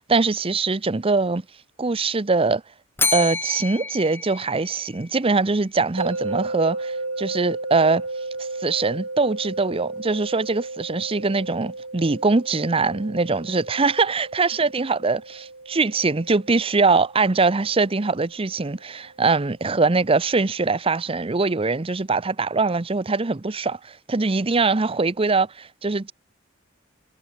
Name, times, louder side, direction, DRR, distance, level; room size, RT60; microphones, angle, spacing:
voice 1, 0.1-1.4 1.8-2.6 3.1-8.0 8.4-26.1, right 3 dB, 25° right, 0.7 m, -22 dB
Bell, 3.0-5.2, left 4 dB, 10° left, 0.7 m, -28 dB
sound 1, 6.0-19.0, right 2 dB, 75° right, 7.7 m, -34 dB
head